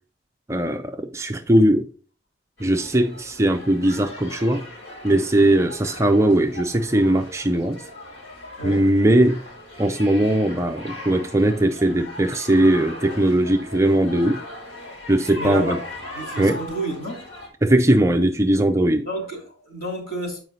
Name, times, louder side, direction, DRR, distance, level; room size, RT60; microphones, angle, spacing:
voice 1, 0.5-1.9 2.6-4.6 5.0-7.8 8.6-9.4 9.8-14.4 15.1-15.8 16.4-16.6 17.6-19.1, right 1 dB, 15° right, 0.5 m, -19 dB
sound 1, 2.6-17.5, left 1 dB, 85° left, 3.7 m, -39 dB
voice 2, 15.3-15.8 16.1-17.3 19.0-20.4, right 1 dB, 50° left, 3.1 m, -30 dB
8.1 x 4.9 x 3.9 m
head